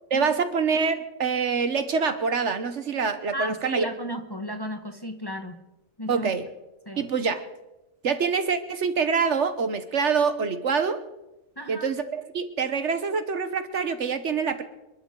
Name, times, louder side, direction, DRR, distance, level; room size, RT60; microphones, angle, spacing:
voice 1, 0.1-3.9 6.1-6.5 7.0-7.5 8.0-11.0 11.7-14.6, right 5 dB, 60° right, 10 dB, 1.3 m, -25 dB
voice 2, 3.3-5.6 6.0-6.3 6.9-7.0 11.6-11.9, equal, 20° left, 5 dB, 1.1 m, -34 dB
27.0 x 12.0 x 3.8 m, 0.98 s
omnidirectional pair, 1.4 m